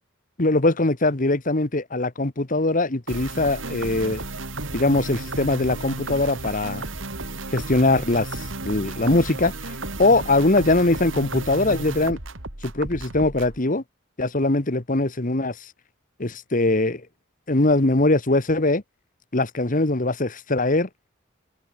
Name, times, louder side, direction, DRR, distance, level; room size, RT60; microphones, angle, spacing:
voice 1, 0.4-4.2 4.7-6.9 7.5-9.5 10.0-12.2 12.6-13.8 14.2-15.5 16.2-17.0 17.5-18.8 19.3-20.9, left 2 dB, 40° left, 1.5 m, -21 dB
sound 1, 3.1-13.6, right 2 dB, 70° right, 4.2 m, -33 dB
head